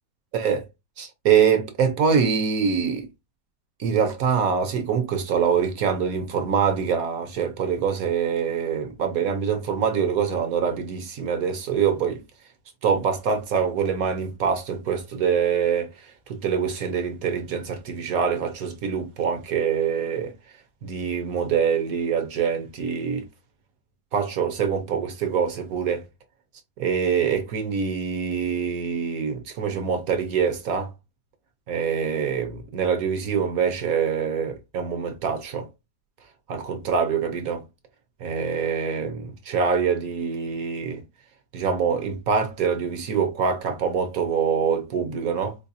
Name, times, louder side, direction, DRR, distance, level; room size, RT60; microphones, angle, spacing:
voice 1, 1.0-3.1 3.8-12.2 12.8-15.9 16.3-20.3 20.8-23.3 24.1-26.0 26.8-30.9 31.7-35.7 36.5-37.6 38.2-41.0 41.5-45.5, right 7 dB, 60° right, 1.1 m, -24 dB
4.6 x 2.4 x 2.6 m
omnidirectional pair, 1.9 m